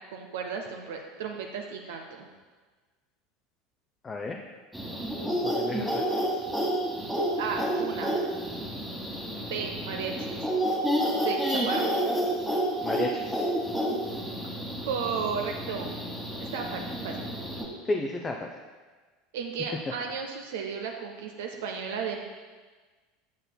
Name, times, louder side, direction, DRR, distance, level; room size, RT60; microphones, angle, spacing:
voice 1, 0.0-2.3 7.4-8.2 9.4-10.3 11.2-11.9 14.8-16.0 16.4-17.2 19.3-22.2, right 6 dB, 65° right, 3 dB, 0.5 m, -34 dB
voice 2, 4.0-4.4 5.4-6.1 12.8-13.4 17.9-18.5, left 2 dB, 25° left, 2 dB, 0.5 m, -32 dB
sound 1, 4.7-17.6, right 1 dB, ahead, 1.2 m, -30 dB
8.0 x 6.5 x 2.2 m, 1.4 s
figure-of-eight pair, 75°, 0 cm